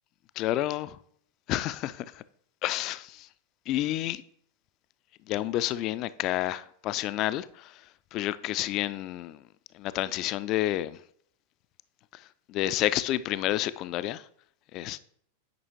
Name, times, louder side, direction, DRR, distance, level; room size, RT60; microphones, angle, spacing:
voice 1, 0.4-1.0 1.5-2.2 2.6-3.3 3.7-4.2 5.3-9.4 9.7-11.0 12.1-14.3 14.7-15.0, left 14 dB, 40° left, 0.3 m, -30 dB
9.5 x 5.3 x 3.1 m
figure-of-eight pair, 90°, 0 cm